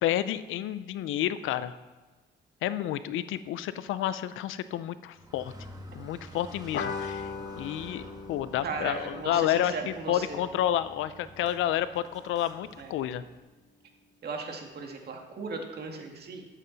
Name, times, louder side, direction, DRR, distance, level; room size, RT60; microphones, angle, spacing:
voice 1, 0.0-1.7 2.6-5.5 5.9-7.3 7.6-13.2, left 12 dB, 85° left, 14 dB, 0.5 m, -30 dB
Car, 5.1-13.4, right 1 dB, 20° right, 1.4 m, -49 dB
sound 1, 6.7-11.7, left 5 dB, 60° left, 0.8 m, -40 dB
voice 2, 8.6-10.4 12.8-12.9 14.2-16.5, right 4 dB, 55° right, 2 dB, 2.1 m, -37 dB
12.5 x 7.5 x 4.0 m, 1.3 s
cardioid pair, 90°, 20 cm